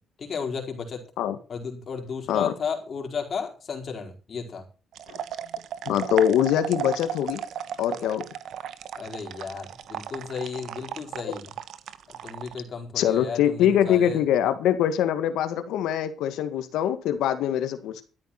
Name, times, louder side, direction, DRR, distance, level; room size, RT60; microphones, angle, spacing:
voice 1, 0.2-1.0 1.5-4.6 9.0-11.5 12.1-14.2, left 5 dB, 50° left, 2 dB, 4.7 m, -33 dB
sound 1, 4.9-12.6, right 9 dB, 75° right, 1.1 m, -35 dB
voice 2, 5.9-7.4 7.8-8.3 11.2-11.3 13.0-18.0, left 10 dB, 90° left, 11 dB, 1.8 m, -23 dB
13.0 x 9.3 x 5.9 m, 0.34 s
cardioid pair, 90°, 0 cm